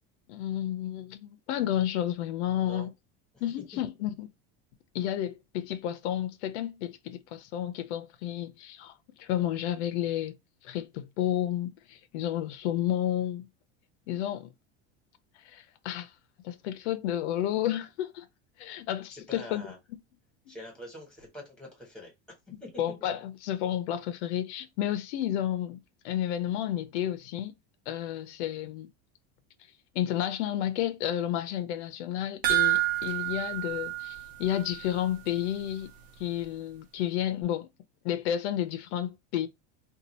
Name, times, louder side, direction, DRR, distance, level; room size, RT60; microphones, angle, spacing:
voice 1, 0.3-2.9 3.4-4.3 4.9-8.9 9.2-13.5 14.1-14.5 15.4-16.1 16.4-18.3 18.6-19.7 22.8-25.8 26.0-27.5 27.9-28.9 29.9-35.9 36.2-37.7 38.0-39.5, left 11 dB, 85° left, 0.6 m, -31 dB
voice 2, 19.1-19.8 20.5-22.1 22.6-22.9, left 1 dB, ahead, 1.3 m, -44 dB
sound 1, 32.4-35.0 35.3-35.4 35.8-35.9, right 17 dB, 70° right, 1.0 m, -29 dB
2.7 x 2.4 x 4.2 m
cardioid pair, 170°, 33 cm